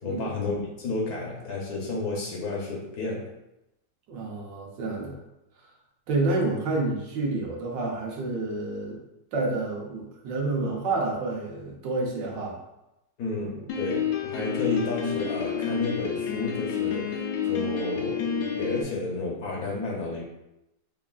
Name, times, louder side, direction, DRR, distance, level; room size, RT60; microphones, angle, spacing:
voice 1, 0.0-3.3 13.2-20.2, left 3 dB, 65° left, -2 dB, 1.2 m, -31 dB
voice 2, 4.1-5.2 6.1-9.0 9.3-12.6, right 3 dB, 80° right, -2 dB, 1.5 m, -29 dB
Piano, 13.7-18.8, left 7 dB, 85° left, 1.3 m, -29 dB
5.5 x 2.4 x 2.3 m, 0.90 s
omnidirectional pair, 2.0 m